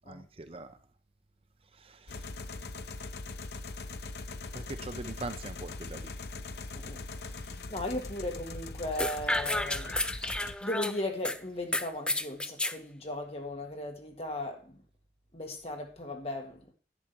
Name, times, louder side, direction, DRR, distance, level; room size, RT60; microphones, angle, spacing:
voice 1, 0.1-0.8 1.7-2.2 4.5-6.1, right 2 dB, 30° right, 0.6 m, -42 dB
sound 1, 2.1-10.5, left 3 dB, 65° left, 0.8 m, -41 dB
voice 2, 7.3-10.1 10.6-14.8 15.3-16.7, left 1 dB, 35° left, 2.0 m, -37 dB
sound 2, 9.0-11.4 11.7-12.8, left 2 dB, 5° left, 0.4 m, -31 dB
11.0 x 9.0 x 4.6 m
head